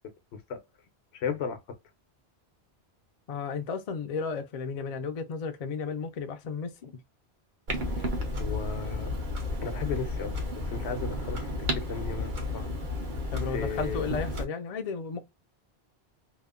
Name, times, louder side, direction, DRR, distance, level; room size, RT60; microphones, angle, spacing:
voice 1, 1.1-1.6 8.4-9.1 9.6-10.4 10.7-12.7 13.5-14.0, left 5 dB, 80° left, 0.9 m, -35 dB
voice 2, 3.3-7.0 13.3-15.2, left 5 dB, 55° left, 0.4 m, -34 dB
Clock, 7.7-14.4, left 1 dB, 50° right, 0.8 m, -32 dB
2.8 x 2.1 x 2.3 m
omnidirectional pair, 1.1 m